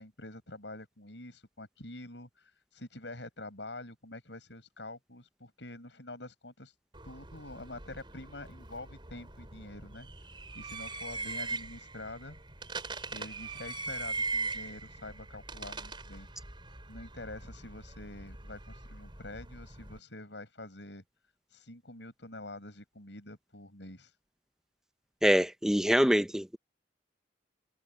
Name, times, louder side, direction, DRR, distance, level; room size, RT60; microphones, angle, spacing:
voice 1, 0.0-6.7 7.0-10.1 10.5-12.4 13.1-16.3 16.9-21.0 21.5-24.1, left 2 dB, 80° left, 7.9 m, -46 dB
sound 1, 6.9-20.0, right 3 dB, 30° right, 4.5 m, -41 dB
voice 2, 25.2-26.6, equal, 5° right, 0.6 m, -25 dB
head